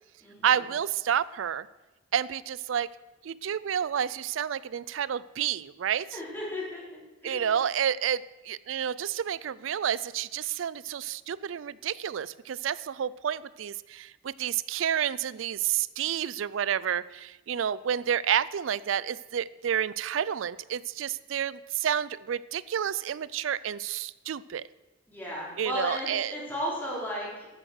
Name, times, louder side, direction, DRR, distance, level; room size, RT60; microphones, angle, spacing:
voice 1, 0.4-1.7 2.1-2.9 3.2-6.2 7.2-24.6 25.6-26.4, right 9 dB, 80° right, 19 dB, 0.4 m, -30 dB
voice 2, 6.1-6.8 7.2-7.5 25.1-27.5, equal, 10° left, -5 dB, 4.5 m, -34 dB
13.0 x 9.0 x 6.5 m, 1.1 s
head